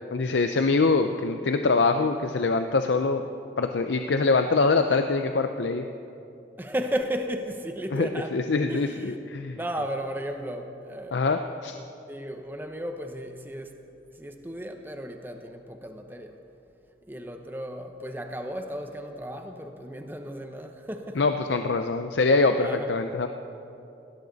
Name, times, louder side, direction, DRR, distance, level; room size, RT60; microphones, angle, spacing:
voice 1, 0.1-3.2 3.6-5.9 7.9-9.6 11.1-11.8 21.2-23.3, left 3 dB, 80° left, 7 dB, 0.6 m, -24 dB
voice 2, 6.6-8.4 8.7-9.2 9.6-11.2 12.1-13.8 14.1-16.4 17.1-21.2 22.6-22.9, equal, 10° right, 5 dB, 0.9 m, -34 dB
19.0 x 16.0 x 4.1 m, 2.8 s
head